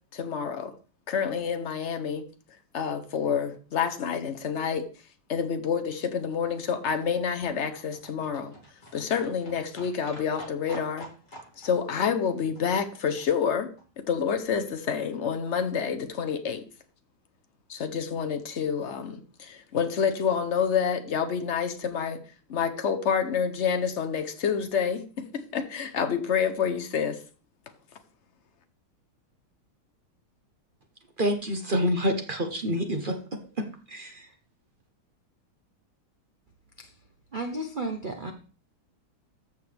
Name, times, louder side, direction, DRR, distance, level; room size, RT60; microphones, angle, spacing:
voice 1, 0.1-0.7 1.1-2.2 2.7-4.9 5.3-8.5 8.9-11.1 11.6-13.7 14.0-16.6 17.7-22.2 22.5-27.2, left 7 dB, 70° left, 0.6 m, -28 dB
Livestock farm animals working animals, 5.9-14.1 14.4-14.5 14.7-14.8 15.0-15.1 15.3-15.4 15.6-15.7 15.9-16.0 16.3-16.4 16.6-16.7, equal, 20° left, 2.7 m, -49 dB
voice 2, 31.2-33.2 33.6-34.3, equal, 35° right, 0.8 m, -27 dB
voice 3, 37.3-38.3, right 2 dB, 85° right, 0.4 m, -33 dB
14.0 x 6.3 x 3.4 m
omnidirectional pair, 2.3 m